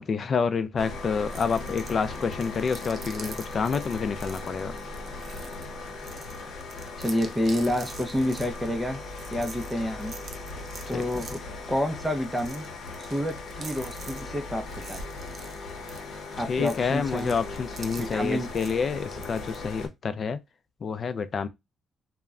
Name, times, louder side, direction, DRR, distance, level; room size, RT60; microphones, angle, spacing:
voice 1, 0.0-4.8 10.9-11.3 16.5-20.4 20.8-21.5, left 5 dB, 50° left, 0.4 m, -28 dB
sound 1, 0.8-19.9, left 3 dB, 70° left, 0.8 m, -38 dB
Grainy Movement - Large, 1.3-19.6, right 4 dB, 50° right, 0.4 m, -47 dB
voice 2, 7.0-9.0 9.3-10.1 10.9-11.4 11.7-12.6 13.1-15.0 16.4-17.3 18.0-18.5, equal, ahead, 0.5 m, -28 dB
2.1 x 2.1 x 3.5 m
cardioid pair, 90°, 0 cm